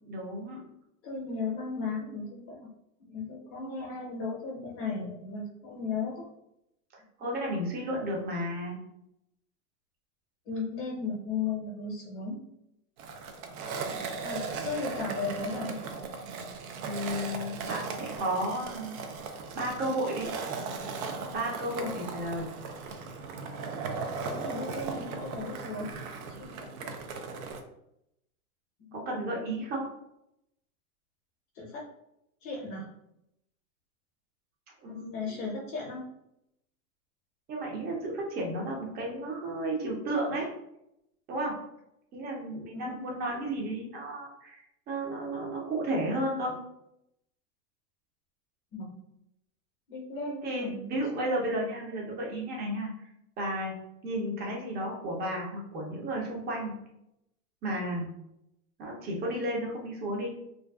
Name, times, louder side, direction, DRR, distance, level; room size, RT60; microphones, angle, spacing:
voice 1, 0.1-0.6 7.2-8.8 16.8-19.0 19.5-20.3 21.3-22.5 28.9-29.9 34.8-35.4 37.5-40.5 41.3-41.5 42.1-46.5 50.4-52.9 53.4-53.8 54.0-56.7 57.6-58.1 58.8-60.3, right 1 dB, 20° right, -2 dB, 0.6 m, -33 dB
voice 2, 1.0-2.7 3.1-6.3 10.5-12.4 14.2-15.8 21.8-21.9 24.2-25.9 26.3-26.9 28.8-29.7 31.5-31.9 32.4-32.9 34.9-36.0 42.5-42.9 48.7-49.0 49.9-51.1, left 4 dB, 40° left, -3 dB, 0.7 m, -36 dB
Skateboard, 13.0-27.6, right 4 dB, 70° right, 0.5 m, -37 dB
2.5 x 2.3 x 2.2 m, 0.81 s
hypercardioid pair, 120°, 44 cm